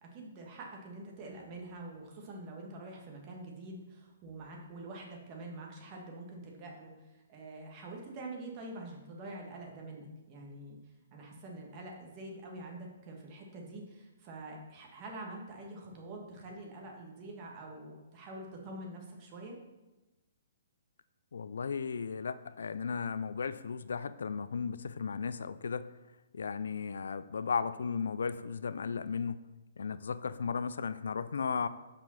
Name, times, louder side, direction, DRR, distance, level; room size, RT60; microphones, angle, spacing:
voice 1, 0.0-10.8 11.1-19.6, right 2 dB, 35° right, 0 dB, 1.7 m, -46 dB
voice 2, 21.3-25.9 26.3-29.4 29.8-31.7, left 5 dB, 75° left, 14 dB, 0.3 m, -35 dB
5.8 x 5.0 x 5.7 m, 1.1 s
hypercardioid pair, 135°, 0 cm